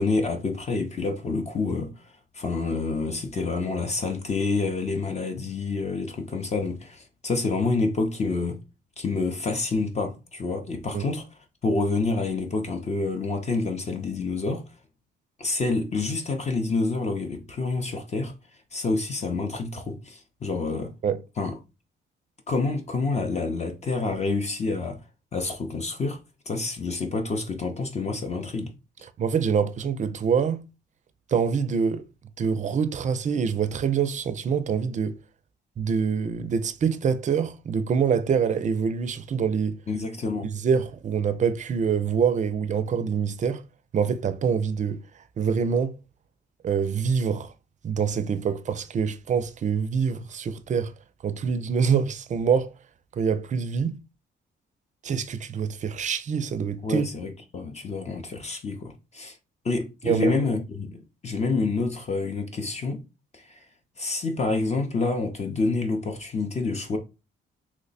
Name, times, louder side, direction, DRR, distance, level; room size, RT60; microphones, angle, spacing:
voice 1, 0.0-8.6 9.0-11.3 11.6-14.7 15.4-18.3 18.7-20.9 21.4-21.6 22.5-25.0 25.3-26.2 26.5-28.7 39.9-40.5 56.8-59.4 59.6-63.0 63.3-63.6 64.0-67.0, left 3 dB, 35° left, 0.6 m, -28 dB
voice 2, 29.2-30.6 31.3-32.0 32.4-35.2 35.8-39.8 40.4-43.6 43.9-45.0 45.4-46.0 46.6-47.5 47.8-50.9 51.2-52.7 53.1-54.0 55.0-57.1 60.0-60.3, right 6 dB, 40° right, 0.4 m, -25 dB
3.0 x 2.0 x 4.0 m
cardioid pair, 90°, 20 cm